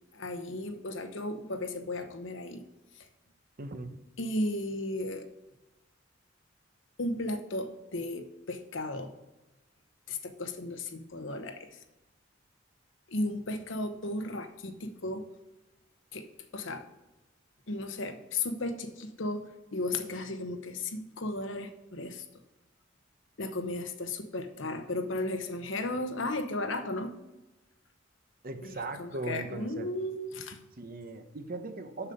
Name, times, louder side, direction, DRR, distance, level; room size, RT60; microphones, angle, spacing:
voice 1, 0.1-2.6 3.0-3.1 4.2-5.3 7.0-9.1 10.1-11.8 13.1-15.3 16.1-16.3 16.5-16.9 17.7-22.2 23.4-27.2 28.6-30.6, left 2 dB, 75° left, 7 dB, 1.0 m, -35 dB
voice 2, 3.6-3.9 28.4-29.9 30.8-32.1, right 2 dB, 50° right, 8 dB, 0.9 m, -39 dB
7.2 x 6.9 x 5.2 m, 1.0 s
head